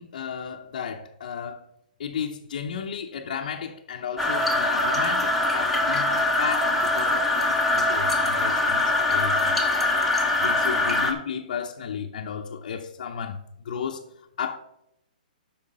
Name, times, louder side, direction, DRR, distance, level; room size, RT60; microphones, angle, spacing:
voice 1, 0.0-1.6 2.0-9.6 10.4-14.0 14.4-14.6, left 7 dB, 60° left, 0.7 m, -33 dB
sound 1, 4.2-11.1, left 2 dB, ahead, 0.9 m, -23 dB
8.6 x 5.7 x 5.4 m
hypercardioid pair, 160°, 5 cm